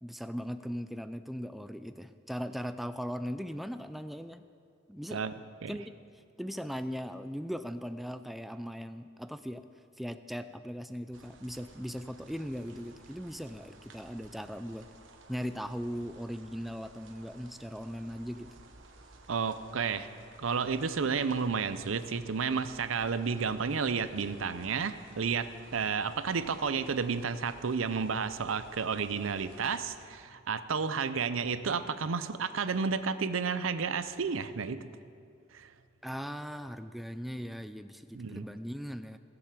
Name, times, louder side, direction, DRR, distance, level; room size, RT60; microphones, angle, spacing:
voice 1, 0.0-4.4 4.9-5.2 5.7-6.0 6.4-9.6 10.0-14.9 15.3-18.5 36.0-39.2, equal, ahead, 10 dB, 0.3 m, -39 dB
sound 1, 11.1-30.1, right 3 dB, 70° right, 1.2 m, -56 dB
voice 2, 19.3-20.1 20.4-34.8 35.5-35.7 38.1-38.5, right 5 dB, 90° right, 12 dB, 0.6 m, -31 dB
17.0 x 7.1 x 7.4 m, 2.3 s
head